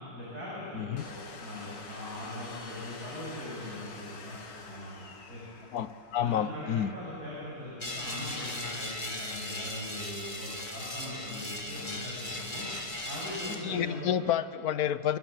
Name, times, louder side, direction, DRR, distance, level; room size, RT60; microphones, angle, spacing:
voice 1, 0.1-4.4 4.7-5.0 5.3-5.4 6.2-12.7 13.0-14.1, left 1 dB, 60° right, -8 dB, 7.6 m, -41 dB
voice 2, 0.7-1.0 5.7-6.9 13.4-15.2, left 10 dB, 65° left, 14 dB, 1.2 m, -30 dB
Domestic sounds home sounds, 1.0-14.1, left 4 dB, 80° left, 2.5 m, -50 dB
sound 1, 7.8-13.6, left 1 dB, 25° left, 2.6 m, -38 dB
28.0 x 22.5 x 7.8 m, 2.7 s
omnidirectional pair, 1.9 m